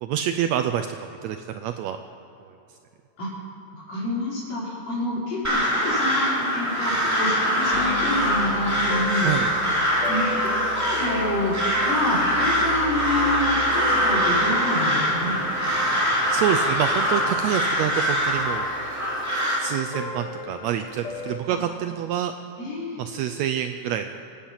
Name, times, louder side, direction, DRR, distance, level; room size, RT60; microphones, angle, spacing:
voice 1, 0.0-2.0 2.4-2.8 9.2-9.5 16.3-18.7 19.6-22.3 23.0-24.2, right 10 dB, 90° right, 7 dB, 1.5 m, -27 dB
voice 2, 3.7-9.3 9.8-15.4 21.5-21.6 22.6-23.0, left 1 dB, 50° left, -6 dB, 5.1 m, -28 dB
Crow, 5.4-19.6, equal, 5° right, 2.1 m, -23 dB
sound 1, 7.7-21.4, left 2 dB, 90° left, 0.6 m, -35 dB
26.0 x 8.8 x 5.7 m, 2.9 s
omnidirectional pair, 3.7 m